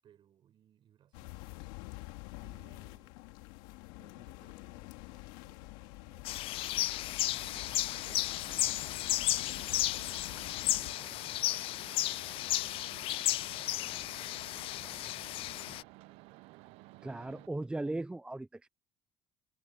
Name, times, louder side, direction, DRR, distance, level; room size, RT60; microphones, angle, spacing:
voice 1, 0.0-1.9 2.4-3.3 3.9-15.8, right 10 dB, 50° right, 7.7 m, -68 dB
sound 1, 1.1-10.9, left 22 dB, 85° left, 2.7 m, -48 dB
sound 2, 6.2-15.8, left 16 dB, 60° left, 0.4 m, -34 dB
sound 3, 7.3-17.5, right 20 dB, 75° right, 1.0 m, -54 dB
voice 2, 17.0-18.7, right 2 dB, 10° right, 0.6 m, -37 dB
supercardioid pair, 90°, 10 cm